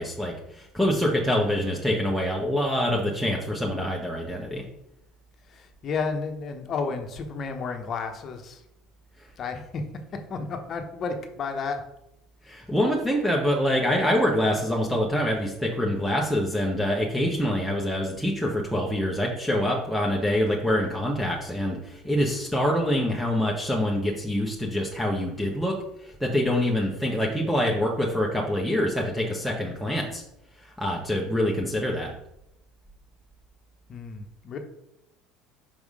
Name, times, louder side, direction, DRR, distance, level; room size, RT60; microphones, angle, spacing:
voice 1, 0.0-4.6 12.4-25.7 26.0-30.2 30.6-32.1, equal, ahead, -2 dB, 1.0 m, -25 dB
voice 2, 5.5-8.6 9.4-9.8 10.1-11.8 33.9-34.6, left 4 dB, 45° left, 5 dB, 1.0 m, -32 dB
5.4 x 3.5 x 4.9 m, 0.83 s
supercardioid pair, 90°, 0 cm